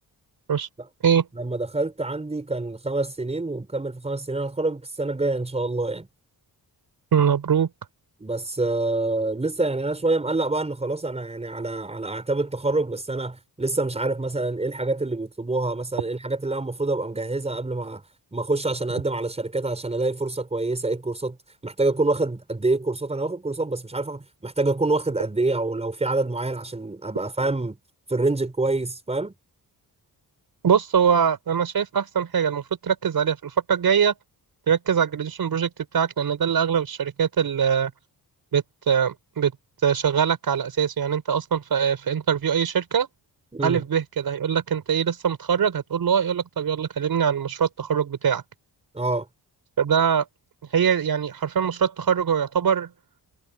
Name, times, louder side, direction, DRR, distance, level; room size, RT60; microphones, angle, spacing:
voice 1, 1.3-6.1 8.2-18.0 18.3-21.4 21.6-27.8 28.1-29.3 43.5-43.8 48.9-49.3, right 2 dB, 15° right, 5.1 m, -26 dB
voice 2, 7.1-7.7 30.6-34.1 34.7-37.9 38.5-39.5 39.8-43.1 43.6-48.4 49.8-50.2 50.7-52.9, right 7 dB, 60° right, 4.6 m, -22 dB
wide cardioid pair, 160°, 40 cm